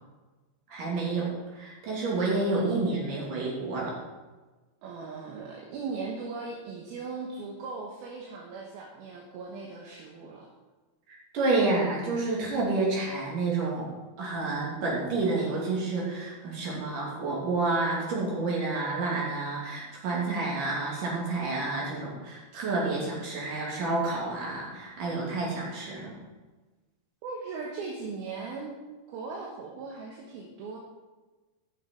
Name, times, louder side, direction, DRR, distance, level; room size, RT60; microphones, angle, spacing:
voice 1, 0.7-4.0 11.1-13.9 14.2-26.1, right 3 dB, 50° right, -4 dB, 4.1 m, -29 dB
voice 2, 4.8-10.5 27.2-28.7 29.1-30.8, right 4 dB, 70° right, -1 dB, 2.8 m, -38 dB
15.5 x 6.6 x 4.6 m, 1.2 s
omnidirectional pair, 5.1 m